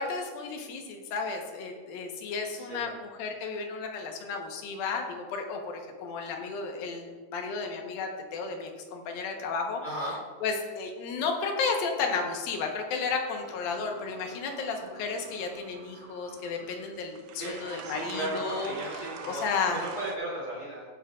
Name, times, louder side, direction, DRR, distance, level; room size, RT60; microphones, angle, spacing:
voice 1, 0.0-10.1 10.4-19.8, left 4 dB, 75° left, 3 dB, 2.8 m, -33 dB
voice 2, 2.6-2.9 9.8-10.1 17.4-17.5 17.8-19.4 19.7-20.8, right 1 dB, 30° left, -6 dB, 2.5 m, -35 dB
sound 1, 13.3-20.2, right 7 dB, 85° right, 2.5 m, -45 dB
15.0 x 9.5 x 2.4 m, 1.5 s
omnidirectional pair, 4.4 m